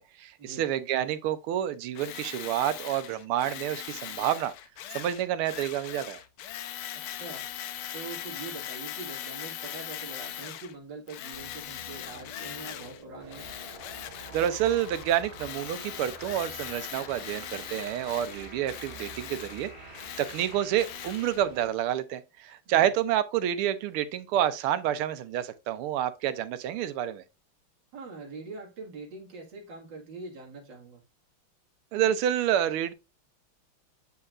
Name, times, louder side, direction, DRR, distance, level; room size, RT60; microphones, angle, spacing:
voice 1, 0.0-4.5 4.9-6.2 14.3-27.2 31.9-32.9, right 11 dB, 85° right, 1.6 m, -29 dB
Tools, 2.0-10.7 11.1-13.0 13.3-21.4, left 11 dB, 85° left, 1.6 m, -40 dB
voice 2, 6.9-7.5 7.9-13.5 22.7-22.9 27.9-31.0, right 3 dB, 60° right, 2.5 m, -43 dB
sound 1, 11.3-21.3, equal, 15° left, 1.3 m, -49 dB
sound 2, 13.2-21.7, right 5 dB, 35° right, 1.0 m, -50 dB
8.1 x 5.5 x 2.4 m
omnidirectional pair, 2.3 m